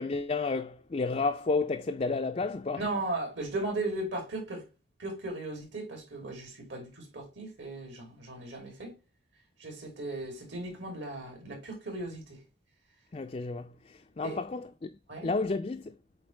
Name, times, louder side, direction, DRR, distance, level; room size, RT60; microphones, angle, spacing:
voice 1, 0.0-2.8 13.1-14.9 15.2-16.0, left 3 dB, 35° left, 0.4 m, -31 dB
voice 2, 2.8-4.7 5.0-8.9 9.6-12.4 14.2-14.4 15.1-15.3, right 2 dB, 70° right, 2.8 m, -36 dB
7.9 x 4.1 x 3.2 m
head